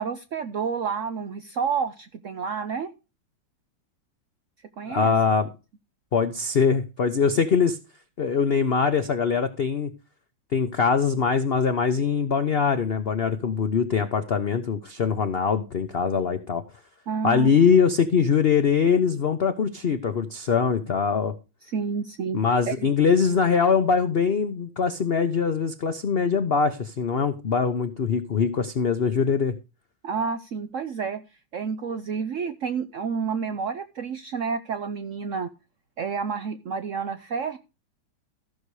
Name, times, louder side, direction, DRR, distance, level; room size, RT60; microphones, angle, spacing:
voice 1, 0.0-2.9 4.8-5.1 17.1-17.5 21.7-22.4 22.7-22.9 30.0-31.2 31.5-35.5 36.0-37.6, right 6 dB, 80° right, 11 dB, 0.6 m, -29 dB
voice 2, 4.9-5.5 6.1-7.8 8.2-9.9 10.5-16.6 17.2-21.3 22.3-29.5, left 6 dB, 60° left, 9 dB, 0.6 m, -22 dB
14.5 x 6.6 x 4.8 m, 0.30 s
omnidirectional pair, 2.2 m